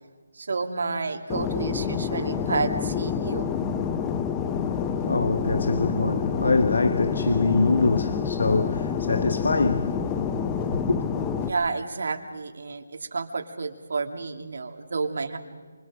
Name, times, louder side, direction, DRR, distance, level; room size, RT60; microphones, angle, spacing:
voice 1, 0.4-3.5 11.5-15.4, right 4 dB, 65° right, 2.7 m, -30 dB
Fixed-wing aircraft airplane, 1.3-11.5, left 7 dB, 10° left, 0.7 m, -28 dB
voice 2, 4.6-11.0, left 3 dB, 75° left, 1.2 m, -24 dB
29.0 x 25.5 x 5.1 m
hypercardioid pair, 175°, 0 cm